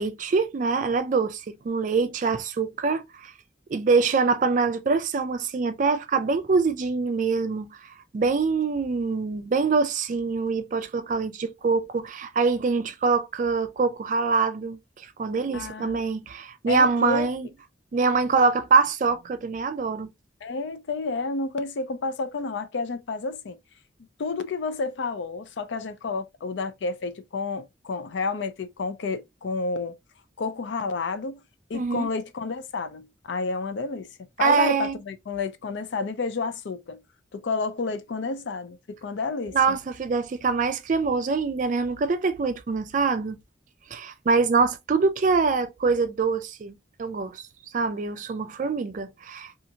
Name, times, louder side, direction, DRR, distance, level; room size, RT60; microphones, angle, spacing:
voice 1, 0.0-3.3 3.7-7.8 8.1-14.8 15.2-17.5 17.9-20.1 31.7-32.1 34.4-34.9 39.5-43.4 43.9-46.7 47.0-47.4 47.7-49.7, right 4 dB, 45° right, 0.3 m, -24 dB
voice 2, 15.5-16.0 16.7-17.3 20.4-23.6 24.2-29.9 30.4-31.4 31.7-34.1 34.4-37.0 37.3-39.8, left 4 dB, 75° left, 0.4 m, -30 dB
2.6 x 2.4 x 2.7 m
head